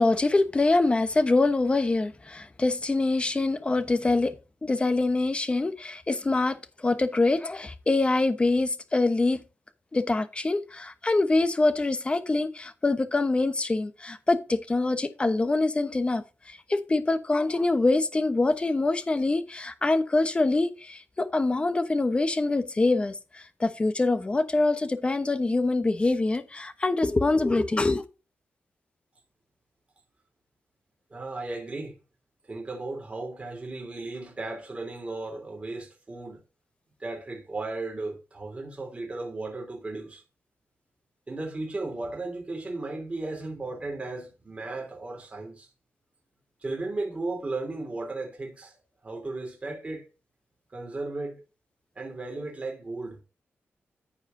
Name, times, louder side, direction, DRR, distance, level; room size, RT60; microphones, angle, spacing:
voice 1, 0.0-4.3 4.6-9.4 9.9-28.0, left 2 dB, 25° left, 1.0 m, -25 dB
voice 2, 31.1-32.0 32.5-36.4 37.0-40.2 41.3-45.7 46.6-48.7 49.0-50.1 50.7-51.4 51.9-53.2, right 2 dB, 30° right, 3.4 m, -35 dB
14.5 x 4.9 x 2.7 m
wide cardioid pair, 115°, 4 cm